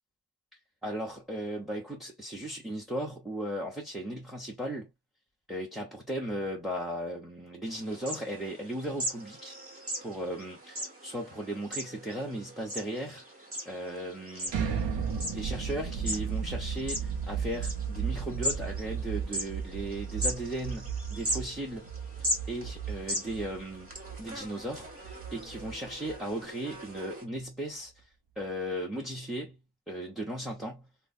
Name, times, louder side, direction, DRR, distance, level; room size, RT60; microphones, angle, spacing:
voice 1, 0.8-4.9 5.5-9.6 10.0-13.2 13.6-14.5 15.2-21.9 22.5-23.9 24.2-28.0 28.4-29.6 29.9-30.9, right 1 dB, ahead, 1.0 m, -36 dB
sound 1, 7.7-27.3, equal, 30° right, 1.5 m, -39 dB
sound 2, 14.5-26.3, right 7 dB, 80° right, 0.7 m, -35 dB
3.1 x 2.2 x 2.5 m
cardioid pair, 50°, 43 cm